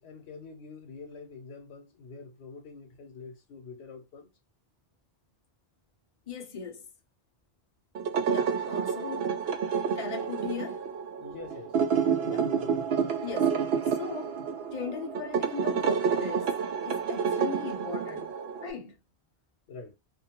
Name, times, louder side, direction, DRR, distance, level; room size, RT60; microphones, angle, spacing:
voice 1, 0.0-4.3 11.2-13.2 17.0-17.1 19.7-19.9, left 4 dB, 90° left, 0.9 m, -46 dB
voice 2, 6.3-6.9 8.3-9.4 9.9-10.8 12.2-12.5 13.2-14.4 14.7-16.5 16.8-18.3 18.6-19.0, left 6 dB, 45° left, 0.6 m, -39 dB
sound 1, 7.9-18.7, right 6 dB, 75° right, 0.8 m, -29 dB
2.5 x 2.2 x 2.8 m
omnidirectional pair, 1.1 m